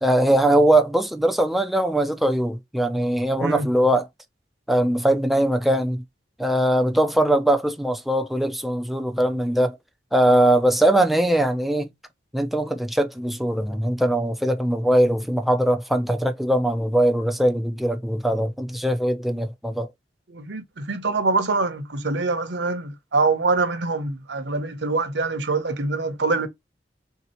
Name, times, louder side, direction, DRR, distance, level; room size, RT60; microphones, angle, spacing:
voice 1, 0.0-4.1 4.7-6.0 6.4-9.8 10.1-11.9 12.3-19.9, right 1 dB, ahead, 0.5 m, -21 dB
voice 2, 20.3-26.5, right 3 dB, 70° right, 0.9 m, -24 dB
3.6 x 2.8 x 4.3 m
head